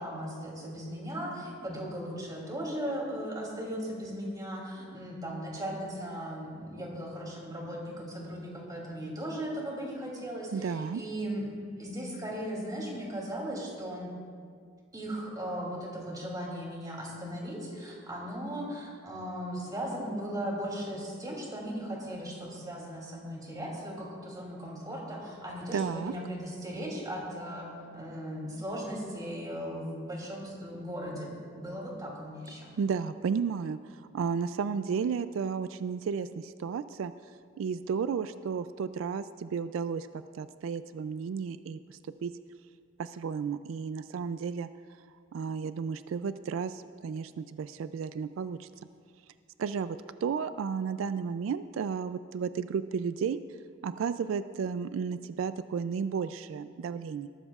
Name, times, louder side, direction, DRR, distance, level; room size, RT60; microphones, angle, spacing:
voice 1, 0.0-11.5 11.8-14.1 14.9-32.7, equal, 20° right, -2 dB, 2.9 m, -37 dB
voice 2, 10.5-11.0 25.7-26.1 32.8-40.1 40.4-42.3 43.0-44.7 45.3-48.7 49.6-53.4 53.8-57.3, right 6 dB, 85° right, 12 dB, 0.3 m, -33 dB
19.5 x 13.5 x 2.4 m, 2.1 s
head